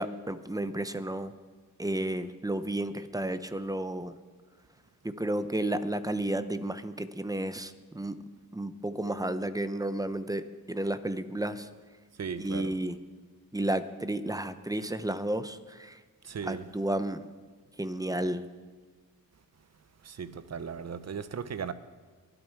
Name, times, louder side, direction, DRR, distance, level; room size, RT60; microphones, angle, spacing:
voice 1, 0.0-1.3 1.8-4.2 5.0-8.2 8.5-11.7 12.4-13.0 13.5-16.0 16.5-17.2 17.8-18.5, right 1 dB, 10° right, 0.8 m, -32 dB
voice 2, 12.2-12.8 16.2-16.7 20.0-21.7, right 6 dB, 45° right, 0.9 m, -37 dB
23.0 x 9.0 x 4.7 m
cardioid pair, 85°, 37 cm